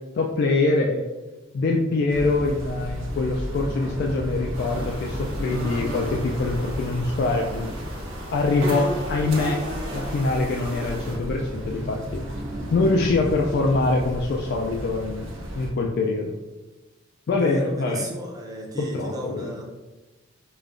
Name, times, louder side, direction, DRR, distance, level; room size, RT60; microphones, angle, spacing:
voice 1, 0.2-1.1 1.5-7.7 8.3-9.6 9.9-12.2 12.7-16.3 17.3-18.1 18.8-19.5, left 3 dB, 55° left, 1 dB, 0.3 m, -24 dB
sound 1, 2.1-15.7, equal, 70° right, 0.6 m, -34 dB
sound 2, 4.5-11.2, equal, 90° right, 1.2 m, -35 dB
voice 2, 17.3-19.6, right 1 dB, 20° right, -2 dB, 0.6 m, -34 dB
4.9 x 2.2 x 2.5 m, 1.2 s
head